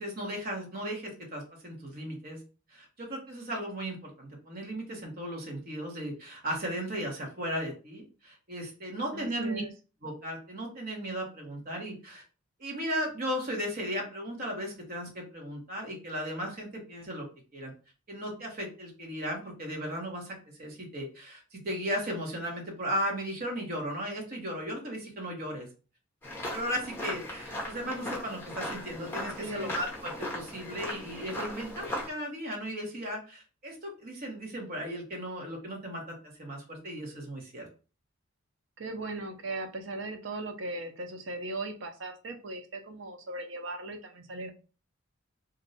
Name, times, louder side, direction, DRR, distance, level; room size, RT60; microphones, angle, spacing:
voice 1, 0.0-2.4 2.7-9.6 10.0-12.2 12.6-17.3 17.5-17.7 18.1-25.7 26.5-37.7, equal, 45° right, 0 dB, 1.0 m, -36 dB
voice 2, 9.1-9.7 29.2-29.7 38.8-44.5, right 2 dB, 65° right, 5 dB, 0.6 m, -38 dB
sound 1, 26.2-32.1, left 1 dB, 10° left, 0.7 m, -38 dB
2.6 x 2.2 x 3.9 m, 0.35 s
head